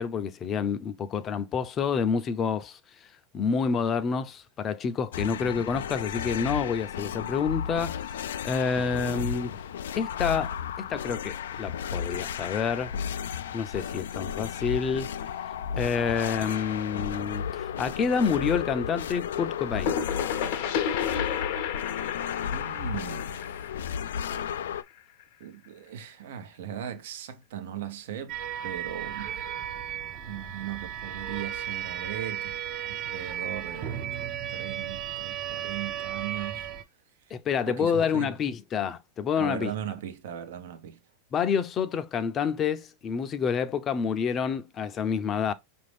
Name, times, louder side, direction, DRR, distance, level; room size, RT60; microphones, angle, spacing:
voice 1, 0.0-2.8 3.3-9.6 10.0-12.9 13.5-15.1 15.8-20.0 37.3-39.7 41.3-45.5, left 6 dB, 30° left, 0.5 m, -28 dB
sound 1, 5.1-24.8, left 8 dB, 90° left, 0.3 m, -34 dB
voice 2, 8.7-9.3 22.5-23.4 25.4-29.4 30.2-36.7 37.7-38.3 39.4-41.0, right 10 dB, 75° right, 0.8 m, -38 dB
sound 2, 19.4-25.0, left 8 dB, 60° left, 0.7 m, -32 dB
sound 3, 28.3-36.8, right 10 dB, 40° right, 0.7 m, -35 dB
5.1 x 2.6 x 3.3 m
supercardioid pair, 135°, 0 cm